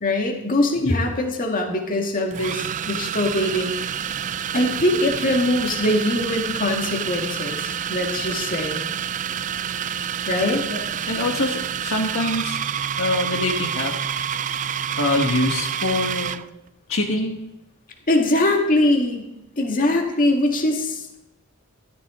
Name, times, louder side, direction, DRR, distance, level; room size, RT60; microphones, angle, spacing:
voice 1, 0.0-4.1 4.5-8.9 10.3-10.7 18.1-19.3 19.6-21.0, left 1 dB, 40° left, 2 dB, 2.0 m, -22 dB
sound 1, 1.1-1.2 2.3-16.5, right 8 dB, 35° right, 0.3 m, -28 dB
voice 2, 7.5-7.9 9.3-9.4 10.7-10.8 11.1-12.6 13.0-13.9 14.6-16.4 16.9-17.4, left 2 dB, 65° left, 1 dB, 1.6 m, -25 dB
13.5 x 13.5 x 3.8 m, 0.91 s
head